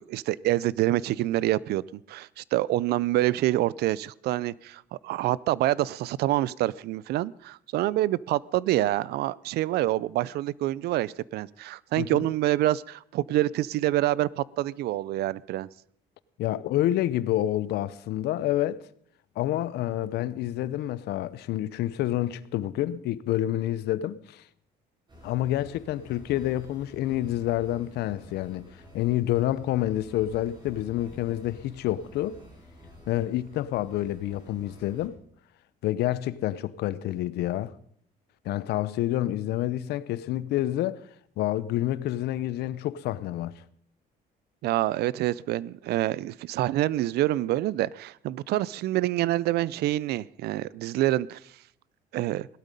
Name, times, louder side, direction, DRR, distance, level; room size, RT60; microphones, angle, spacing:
voice 1, 0.0-15.7 44.6-51.4 52.1-52.5, right 15 dB, 75° right, 0.5 m, -27 dB
voice 2, 16.4-18.8 19.4-24.4 25.2-28.7 28.9-32.4 33.1-35.2 35.8-37.7 38.4-41.0 41.4-43.5, left 13 dB, 75° left, 0.7 m, -28 dB
sound 1, 25.1-35.1, left 1 dB, 25° right, 5.5 m, -50 dB
17.5 x 12.5 x 5.3 m
cardioid pair, 110°, 17 cm